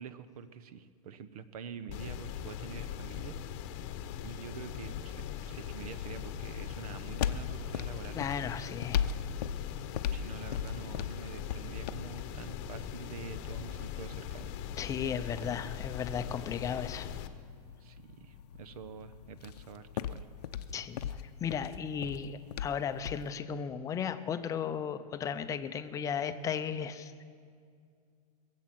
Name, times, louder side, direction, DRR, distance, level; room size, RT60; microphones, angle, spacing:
voice 1, 0.0-3.4 4.2-8.2 10.1-14.5 17.8-20.3, right 7 dB, 70° right, 13 dB, 0.9 m, -46 dB
sound 1, 1.9-17.3, left 9 dB, 45° left, 0.9 m, -40 dB
sound 2, 6.3-23.3, left 9 dB, 85° left, 0.7 m, -40 dB
voice 2, 8.1-9.1 14.8-17.1 20.7-27.2, left 7 dB, 15° left, 10 dB, 0.6 m, -35 dB
21.0 x 7.5 x 7.6 m, 2.2 s
supercardioid pair, 145°, 20 cm